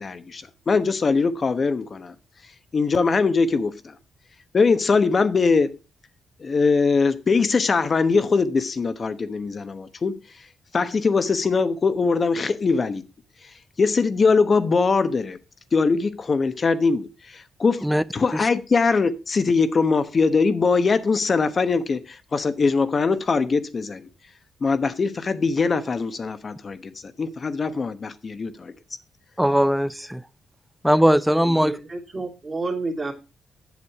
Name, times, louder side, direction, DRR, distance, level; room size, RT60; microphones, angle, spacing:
voice 1, 0.0-2.1 2.7-3.9 4.5-5.7 6.4-10.2 10.7-13.0 13.8-15.4 15.7-17.9 18.1-24.1 24.6-26.9 27.2-28.7, left 4 dB, 45° left, 1.0 m, -22 dB
voice 2, 29.4-30.2 30.8-31.8, equal, 5° right, 0.5 m, -19 dB
voice 3, 31.4-33.1, right 3 dB, 35° right, 2.4 m, -30 dB
8.3 x 6.9 x 4.7 m
cardioid pair, 70°, 0 cm